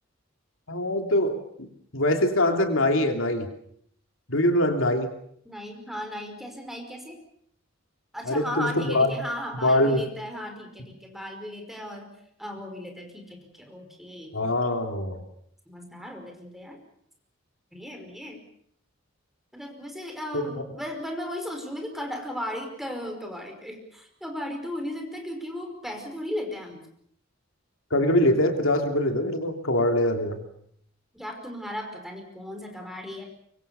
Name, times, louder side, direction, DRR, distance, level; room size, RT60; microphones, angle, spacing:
voice 1, 0.7-1.4 1.9-3.5 4.3-5.1 8.2-9.1 9.6-10.0 14.3-15.2 20.3-20.5 27.9-30.4, left 1 dB, 75° left, 5 dB, 3.1 m, -23 dB
voice 2, 5.5-7.2 8.1-12.1 12.4-14.5 15.7-16.8 17.7-18.4 19.5-26.8 31.1-33.2, equal, ahead, 4 dB, 5.3 m, -36 dB
24.5 x 24.0 x 7.0 m, 0.68 s
head